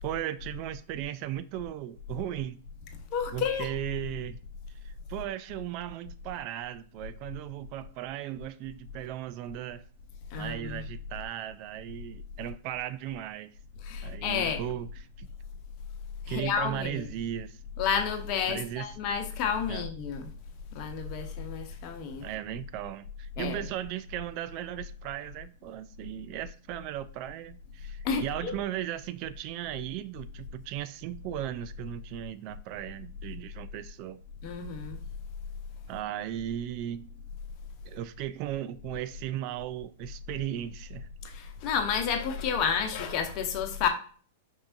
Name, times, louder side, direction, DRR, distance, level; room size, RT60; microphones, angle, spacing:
voice 1, 0.0-2.6 3.3-4.4 4.7-9.8 10.4-13.5 14.0-15.3 16.3-17.6 18.5-18.9 19.7-19.8 22.2-34.2 35.9-37.1 37.8-41.1, right 12 dB, 45° right, 0.3 m, -36 dB
voice 2, 3.1-3.7 10.3-10.8 13.8-14.6 16.3-17.1 17.8-20.3 20.7-22.2 23.4-23.6 28.0-28.5 34.4-35.0 41.2-43.9, left 7 dB, 45° left, 0.9 m, -30 dB
5.3 x 3.4 x 2.6 m
hypercardioid pair, 120°, 0 cm